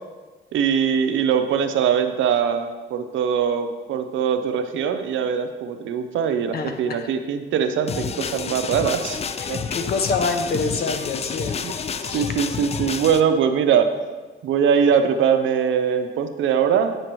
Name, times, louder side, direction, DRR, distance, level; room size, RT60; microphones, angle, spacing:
voice 1, 0.5-9.2 9.5-9.6 11.6-11.7 12.0-13.9 14.4-17.0, right 7 dB, 75° right, 8 dB, 0.6 m, -22 dB
voice 2, 6.5-7.1 9.4-11.6 12.1-12.2, left 4 dB, 50° left, 7 dB, 0.8 m, -26 dB
sound 1, 7.9-13.2, left 6 dB, 30° left, 0.4 m, -29 dB
8.2 x 6.4 x 3.0 m, 1.3 s
cardioid pair, 90°, 20 cm